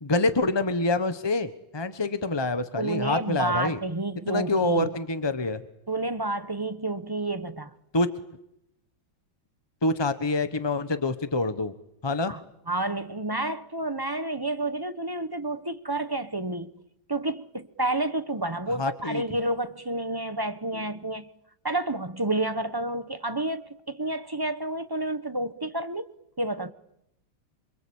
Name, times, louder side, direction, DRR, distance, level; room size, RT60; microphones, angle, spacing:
voice 1, 0.0-3.8 4.3-5.6 7.9-8.1 9.8-11.7 12.0-12.3 18.8-19.2, left 2 dB, 25° left, 0.6 m, -26 dB
voice 2, 2.8-4.9 5.9-7.7 12.3-12.4 12.7-16.7 17.1-21.3 21.6-26.7, right 2 dB, 30° right, 0.4 m, -30 dB
27.0 x 25.5 x 8.7 m
omnidirectional pair, 2.3 m